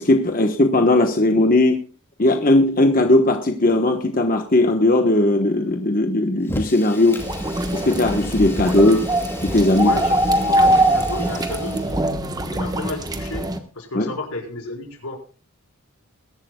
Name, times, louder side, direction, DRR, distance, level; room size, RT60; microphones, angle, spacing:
voice 1, 0.0-1.8 2.2-7.2 7.7-9.0 9.5-9.9 13.9-14.1, left 2 dB, 40° left, 4 dB, 1.2 m, -17 dB
Fire, 6.4-12.0, left 1 dB, 10° left, 2.4 m, -35 dB
sound 1, 7.2-13.6, right 1 dB, 15° right, 1.2 m, -22 dB
voice 2, 9.8-10.2 10.5-12.0 12.5-13.5 13.7-15.2, left 2 dB, 90° left, 1 dB, 4.6 m, -31 dB
22.0 x 12.5 x 2.3 m, 0.34 s
head